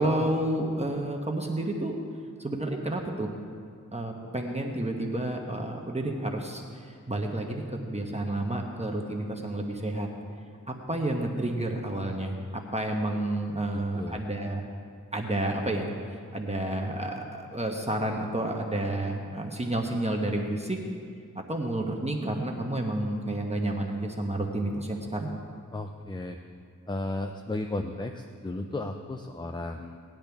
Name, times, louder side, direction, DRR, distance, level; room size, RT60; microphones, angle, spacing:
voice 1, 0.0-2.0 2.4-3.3 3.9-10.1 10.7-14.6 15.1-20.8 21.3-25.3, right 1 dB, 20° right, 1 dB, 1.1 m, -30 dB
voice 2, 13.7-14.3 25.7-26.4 26.9-30.0, left 2 dB, 15° left, 5 dB, 0.5 m, -34 dB
18.0 x 10.5 x 3.5 m, 2.2 s
wide cardioid pair, 85°, 32 cm